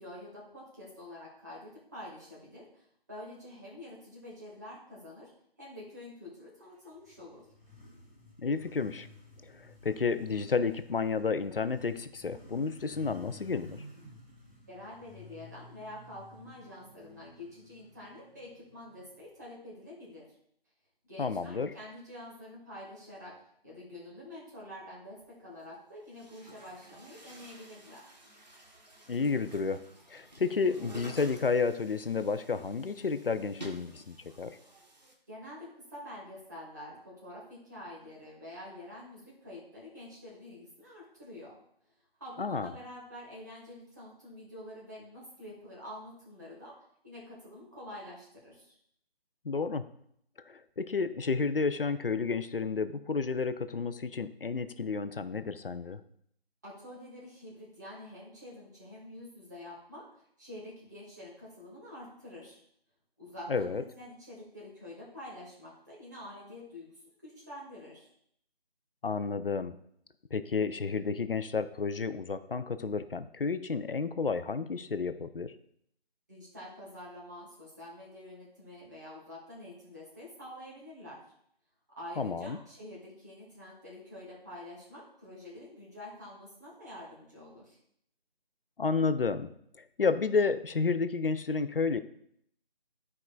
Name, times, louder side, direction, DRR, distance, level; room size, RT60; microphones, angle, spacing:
voice 1, 0.0-5.3 5.6-7.5 14.7-20.3 21.1-23.4 23.6-28.1 35.3-41.6 42.2-46.7 47.0-48.8 56.6-62.6 63.2-68.1 76.3-81.2 82.0-87.8, left 1 dB, 20° right, -6 dB, 1.3 m, -47 dB
Motorcycle, 6.7-19.4, left 2 dB, 15° left, 1.4 m, -54 dB
voice 2, 8.4-9.1 9.5-13.8 21.2-21.7 29.1-29.8 30.1-34.6 42.4-42.7 49.4-49.8 50.5-56.0 63.5-63.8 69.0-69.8 70.3-75.5 82.2-82.6 88.8-89.5 89.7-92.0, left 4 dB, 65° left, 12 dB, 0.5 m, -31 dB
Chatter / Gurgling / Tap, 25.2-25.3 26.0-35.1, right 1 dB, 45° right, 1.0 m, -51 dB
11.5 x 4.8 x 2.2 m, 0.70 s
figure-of-eight pair, 165°, 31 cm